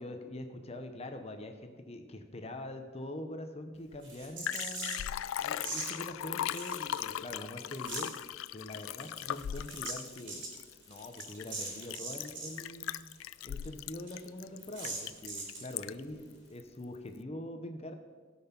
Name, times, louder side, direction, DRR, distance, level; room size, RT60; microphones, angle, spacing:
voice 1, 0.0-5.0 5.4-8.1 8.5-10.5 10.9-13.1 13.4-17.9, left 1 dB, 30° left, 6 dB, 0.8 m, -44 dB
Liquid, 3.9-4.0 4.2-16.1 16.6-16.7, left 10 dB, 90° left, 0.3 m, -39 dB
sound 1, 4.0-5.1 5.6-5.9 6.5-7.3 7.6-8.2 8.8-12.6 12.9-13.0 13.2-13.3 13.6-13.7 14.1-14.2 14.7-15.7, right 3 dB, 70° right, 3.5 m, -41 dB
17.0 x 5.8 x 5.8 m, 1.5 s
head